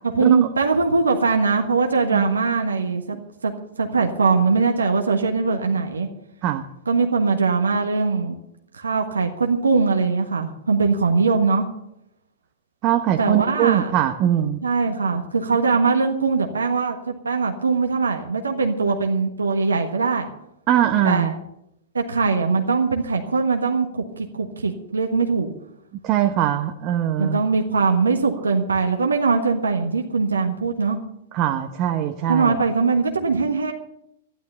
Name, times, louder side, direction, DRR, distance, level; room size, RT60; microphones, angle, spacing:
voice 1, 0.0-3.2 3.4-3.5 3.8-6.1 6.9-8.4 8.8-11.7 13.2-13.9 14.6-20.3 21.0-21.4 21.9-25.5 27.2-31.0 32.3-33.7, right 4 dB, 80° right, 4 dB, 1.4 m, -21 dB
voice 2, 12.8-14.6 20.7-21.3 26.0-27.4 31.3-32.6, right 11 dB, 40° right, 4 dB, 1.1 m, -21 dB
13.0 x 11.5 x 6.9 m, 0.80 s
figure-of-eight pair, 105°, 0 cm